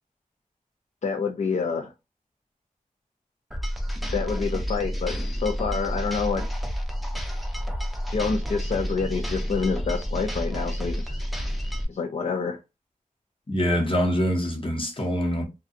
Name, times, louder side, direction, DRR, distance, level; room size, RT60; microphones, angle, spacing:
voice 1, 1.0-1.9 4.1-6.5 8.1-11.2 11.9-12.6, left 5 dB, 55° left, 0.4 m, -27 dB
sound 1, 3.5-11.8, equal, ahead, 0.5 m, -30 dB
voice 2, 13.5-15.4, equal, 40° left, 0.9 m, -24 dB
2.5 x 2.2 x 2.5 m
wide cardioid pair, 70°, 14 cm